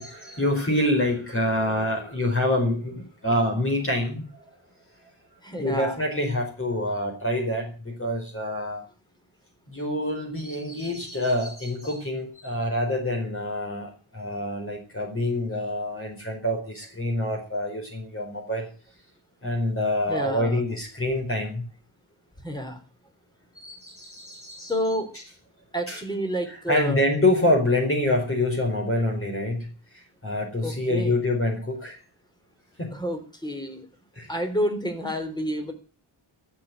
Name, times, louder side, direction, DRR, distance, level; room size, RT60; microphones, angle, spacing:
voice 1, 0.0-4.4 5.6-8.8 9.7-18.7 19.4-21.6 23.5-24.7 25.9-26.0 26.7-29.7 30.2-32.0 32.8-32.9 34.2-34.3, left 1 dB, 25° left, 1 dB, 4.7 m, -26 dB
voice 2, 5.4-6.0 20.1-20.6 22.4-22.8 24.6-25.1 25.7-27.0 30.6-31.1 32.9-33.9 34.3-35.7, equal, 10° left, 5 dB, 3.7 m, -29 dB
14.0 x 7.7 x 9.5 m, 0.38 s
wide cardioid pair, 120°, 49 cm